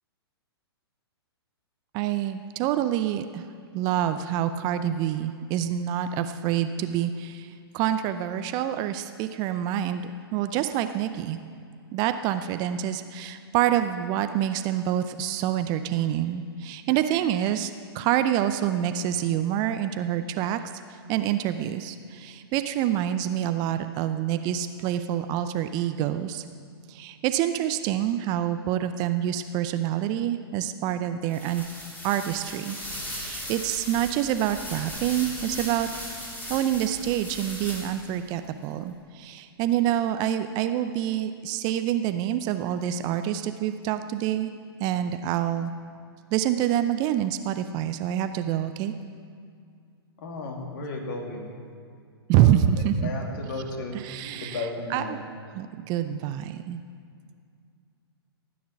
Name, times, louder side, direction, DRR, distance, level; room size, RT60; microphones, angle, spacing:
voice 1, 1.9-3.5 3.7-11.4 11.9-20.6 21.1-26.4 26.9-31.6 32.0-32.8 33.0-35.9 36.5-44.5 44.8-45.7 46.3-48.9 52.3-53.1 53.9-55.2 55.5-56.8, right 11 dB, 30° right, 10 dB, 0.5 m, -27 dB
sound 1, 31.3-38.2, equal, 10° left, 3.0 m, -38 dB
voice 2, 50.2-51.5 52.4-52.5 53.0-54.1 54.4-55.2, left 2 dB, 50° left, 1 dB, 2.7 m, -34 dB
15.5 x 9.5 x 5.8 m, 2.2 s
figure-of-eight pair, 120°, 14 cm